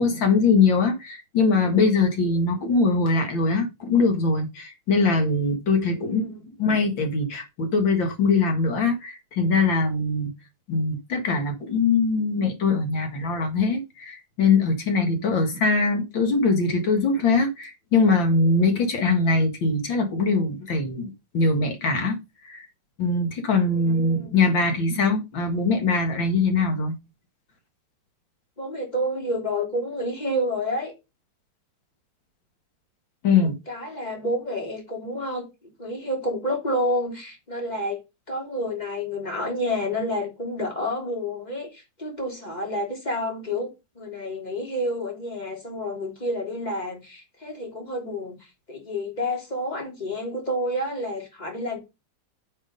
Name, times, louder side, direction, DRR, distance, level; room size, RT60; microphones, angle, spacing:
voice 1, 0.0-6.3 6.6-10.3 10.7-22.2 22.4-22.7 23.0-26.9 33.2-33.5, left 3 dB, 80° left, 2.6 m, -22 dB
voice 2, 5.9-6.4 23.7-24.3 28.6-30.9 33.4-35.5 35.8-38.0 38.3-43.7 44.0-48.4 48.7-51.8, left 1 dB, 20° left, 3.5 m, -29 dB
9.6 x 5.6 x 5.2 m
omnidirectional pair, 2.0 m